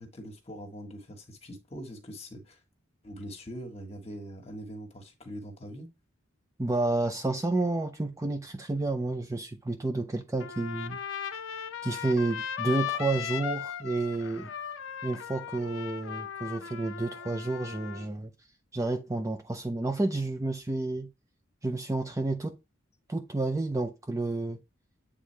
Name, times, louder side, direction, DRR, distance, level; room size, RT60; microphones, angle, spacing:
voice 1, 0.0-2.6 3.0-5.9, equal, 30° left, 1.5 m, -42 dB
voice 2, 6.6-11.0 11.8-14.5 15.0-18.3 18.7-21.1 21.6-22.6 23.1-24.6, right 2 dB, 15° right, 0.4 m, -30 dB
Trumpet, 10.4-18.1, left 8 dB, 65° left, 0.6 m, -37 dB
8.4 x 3.6 x 3.3 m
head